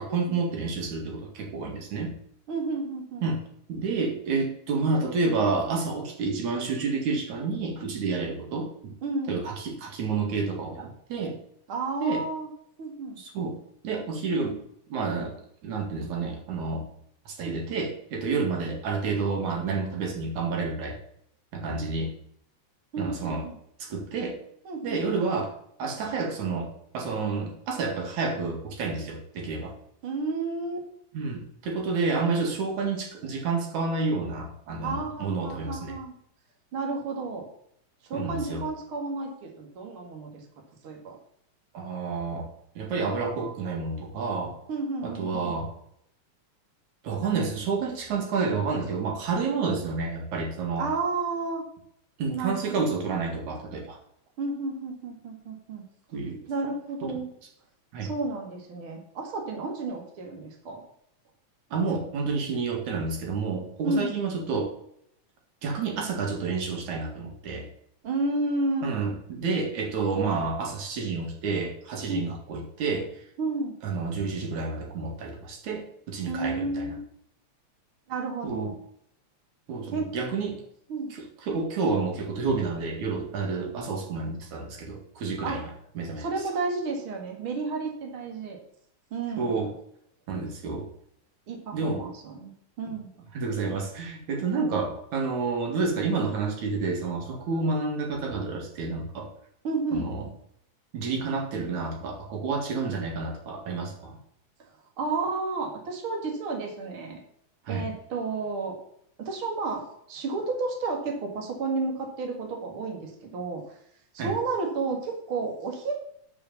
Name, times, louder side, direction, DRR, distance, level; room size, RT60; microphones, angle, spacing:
voice 1, 0.0-2.1 3.2-3.4 3.7-9.0 9.3-11.4 12.0-12.2 13.2-13.6 13.8-14.6 14.9-15.3 15.6-16.8 17.3-21.0 21.5-22.1 23.0-23.4 23.8-24.4 24.8-25.5 25.8-29.7 31.1-36.0 38.1-38.6 41.7-42.5 42.8-44.5 45.0-45.7 47.0-50.9 52.2-54.0 56.1-56.4 57.0-57.1 57.9-58.1 61.7-64.7 65.6-67.7 68.8-73.1 73.8-76.9 78.4-78.7 79.7-80.6 81.4-85.7 86.0-86.3 89.4-89.7 90.3-90.9 91.7-92.0 93.3-99.3 99.9-100.2 100.9-104.2 107.6-107.9 114.2-114.3, right 4 dB, 85° right, 1 dB, 3.4 m, -29 dB
voice 2, 2.5-3.3 9.0-9.4 11.7-12.5 12.8-13.2 17.4-17.8 22.9-23.5 24.7-25.2 30.0-30.9 34.8-36.1 36.7-37.5 38.0-40.5 40.8-41.2 44.7-45.6 50.8-51.6 52.3-52.7 54.4-55.8 56.5-57.3 58.0-60.8 63.8-64.2 68.0-68.9 72.1-72.3 73.4-73.7 76.3-77.0 78.1-78.7 79.9-80.1 80.9-81.1 85.4-85.6 86.2-88.6 89.1-89.6 91.5-92.5 92.8-93.1 99.6-100.1 104.6-104.7 105.0-107.2 107.7-108.8 109.2-113.8 114.1-116.0, right 3 dB, 50° right, 1 dB, 2.5 m, -31 dB
9.7 x 5.5 x 7.0 m, 0.71 s
omnidirectional pair, 3.3 m